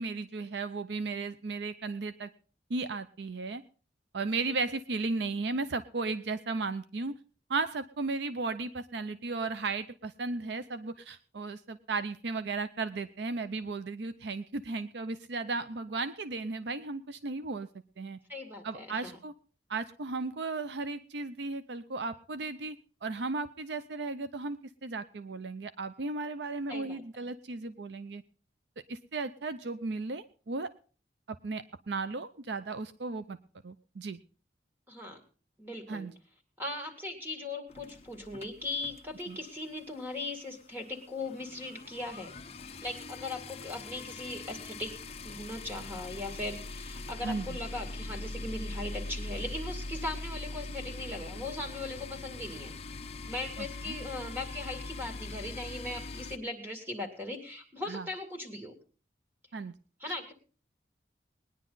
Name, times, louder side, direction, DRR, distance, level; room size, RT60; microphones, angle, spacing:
voice 1, 0.0-2.3 2.7-3.6 4.1-7.1 7.5-17.7 18.0-18.2 18.6-19.3 19.7-28.2 28.9-30.7 31.3-33.4 33.6-34.2 35.9-36.1 39.3-39.4 47.2-47.6 53.6-54.0 57.9-58.1 59.5-59.7, right 3 dB, 75° right, 12 dB, 0.6 m, -35 dB
voice 2, 18.3-19.2 26.7-27.0 34.9-35.2 35.6-36.1 36.6-42.3 42.8-44.9 45.2-52.7 53.3-58.7 60.0-60.3, left 2 dB, 10° right, 3 dB, 2.3 m, -39 dB
sound 1, 37.7-39.5 39.8-40.0 40.3-40.4 40.6-56.4, left 2 dB, 35° left, 0.7 m, -42 dB
19.5 x 10.5 x 3.9 m, 0.38 s
head